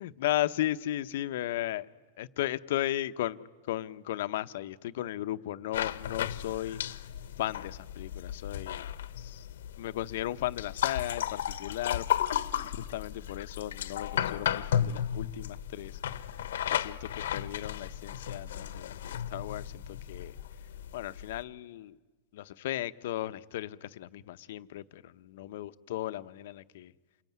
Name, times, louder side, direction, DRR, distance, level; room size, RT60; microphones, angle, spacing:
voice 1, 0.0-1.9 2.2-6.8 7.4-8.9 9.2-9.5 9.8-12.1 12.6-16.0 16.7-20.4 20.9-22.0 22.3-26.9, left 14 dB, 70° left, 12 dB, 0.9 m, -35 dB
sound 1, 5.7-21.4, left 10 dB, 85° left, 1.1 m, -34 dB
28.5 x 21.5 x 9.4 m, 1.3 s
supercardioid pair, 150°, 0 cm